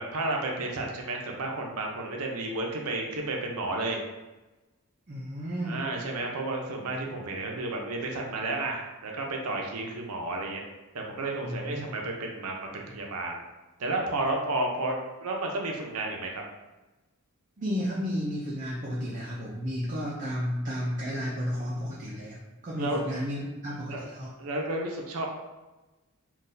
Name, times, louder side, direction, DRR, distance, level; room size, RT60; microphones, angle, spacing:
voice 1, 0.0-4.0 5.6-10.6 10.9-13.4 13.8-16.4 22.8-23.0 23.4-23.5 23.9-24.0 24.4-25.3, right 2 dB, 85° right, 1 dB, 0.6 m, -32 dB
voice 2, 5.1-5.8 11.4-11.8 17.6-24.3, equal, 35° right, -5 dB, 0.4 m, -32 dB
3.9 x 2.3 x 2.6 m, 1.1 s
head